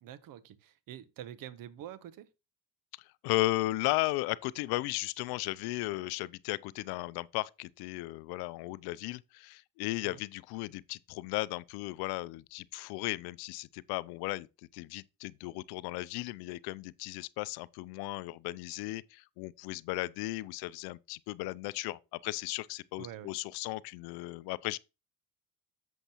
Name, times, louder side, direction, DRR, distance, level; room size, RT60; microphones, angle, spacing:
voice 1, 0.0-2.3 10.0-10.2 23.0-23.3, right 11 dB, 60° right, 0.9 m, -46 dB
voice 2, 3.0-14.5 14.7-24.8, left 20 dB, 75° left, 0.5 m, -35 dB
7.9 x 7.2 x 2.9 m
supercardioid pair, 85°, 38 cm